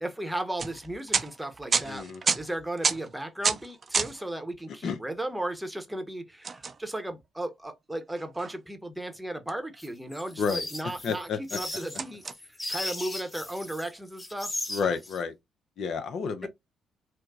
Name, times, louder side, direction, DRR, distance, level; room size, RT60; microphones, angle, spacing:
voice 1, 0.0-12.2 12.7-14.5 14.8-14.9 16.4-16.5, right 1 dB, 10° right, 0.8 m, -35 dB
sound 1, 0.6-4.3 4.5-4.6 6.4-7.5 8.0-8.6 9.5-10.1 10.7-10.8 11.1-11.3 11.9-12.3, right 5 dB, 40° right, 0.4 m, -30 dB
voice 2, 1.8-2.2 4.8-5.0 10.4-10.7 11.0-11.6 14.7-15.3 15.8-16.5, left 5 dB, 65° left, 0.5 m, -30 dB
sound 2, 9.8-13.9 14.2-15.2, left 2 dB, 25° left, 1.0 m, -36 dB
4.4 x 2.0 x 2.3 m
hypercardioid pair, 50°, 0 cm